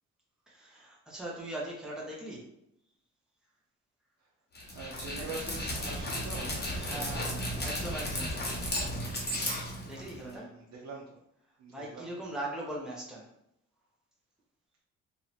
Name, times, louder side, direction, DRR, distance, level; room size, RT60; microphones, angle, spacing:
voice 1, 0.5-2.4 6.7-8.5 9.8-10.5 11.7-13.3, right 1 dB, ahead, -4 dB, 1.2 m, -40 dB
Dog, 4.6-10.3, equal, 35° left, 1.2 m, -34 dB
voice 2, 4.7-7.3 10.2-11.0 11.6-12.1, right 4 dB, 65° right, -3 dB, 0.9 m, -44 dB
3.0 x 2.8 x 4.2 m, 0.76 s
cardioid pair, 90°, 30 cm